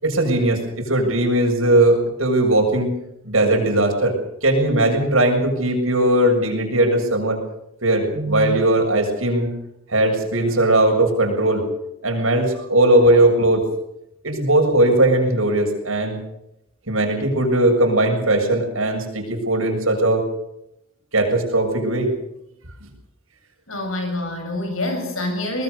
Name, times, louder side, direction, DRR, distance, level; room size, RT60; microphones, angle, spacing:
voice 1, 0.0-2.9 3.2-4.2 4.4-7.4 7.8-9.5 9.9-11.6 12.0-13.6 14.2-16.2 16.9-20.2 21.1-22.1, right 1 dB, 85° right, 2 dB, 7.1 m, -18 dB
voice 2, 23.7-25.6, left 1 dB, 85° left, 5 dB, 7.6 m, -26 dB
23.5 x 20.0 x 6.7 m, 0.82 s
head